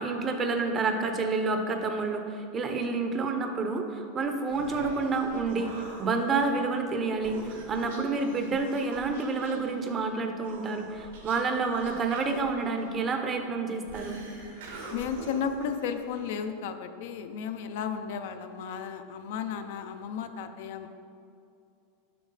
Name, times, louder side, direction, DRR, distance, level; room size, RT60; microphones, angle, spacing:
voice 1, 0.0-14.2, right 4 dB, 20° right, 5 dB, 0.6 m, -29 dB
Human voice, 4.2-16.4, right 2 dB, 90° right, 1.9 m, -46 dB
voice 2, 14.9-20.9, left 7 dB, 65° left, 8 dB, 0.5 m, -34 dB
7.5 x 6.0 x 4.0 m, 2.6 s
supercardioid pair, 160°, 0 cm